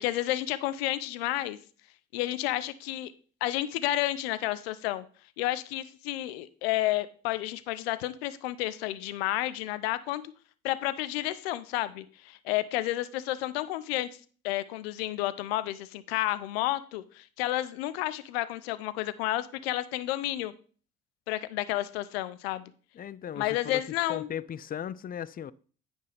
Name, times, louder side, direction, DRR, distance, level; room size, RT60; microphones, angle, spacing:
voice 1, 0.0-1.6 2.1-3.1 3.4-5.0 5.4-10.2 10.6-14.1 14.4-20.5 21.3-22.7 23.4-24.3, left 15 dB, 80° left, 0.5 m, -31 dB
voice 2, 22.9-23.8 24.1-25.5, left 9 dB, 30° left, 0.4 m, -37 dB
9.5 x 5.3 x 3.4 m
hypercardioid pair, 50°, 30 cm